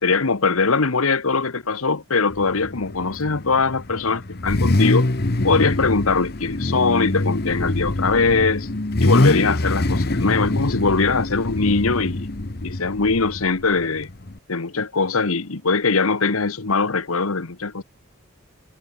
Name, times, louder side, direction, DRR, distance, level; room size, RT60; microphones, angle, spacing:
voice 1, 0.0-5.1 5.4-8.7 9.0-12.3 12.6-14.1 14.5-17.8, left 4 dB, 80° left, 1.3 m, -21 dB
Car / Idling / Accelerating revving vroom, 2.3-14.4, left 2 dB, 45° left, 1.1 m, -24 dB
head